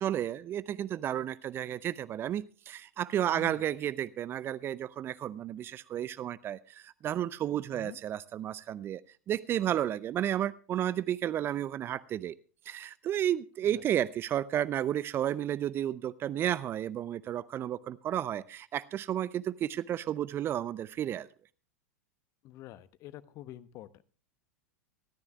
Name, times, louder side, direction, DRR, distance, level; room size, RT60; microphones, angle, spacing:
voice 1, 0.0-9.0 9.3-12.3 12.7-21.3, right 11 dB, 30° right, 19 dB, 0.6 m, -32 dB
voice 2, 3.3-3.7 7.7-8.0 13.6-13.8 22.4-24.0, left 14 dB, 40° left, 16 dB, 1.0 m, -47 dB
25.0 x 13.0 x 2.3 m, 0.39 s
figure-of-eight pair, 85°, 8 cm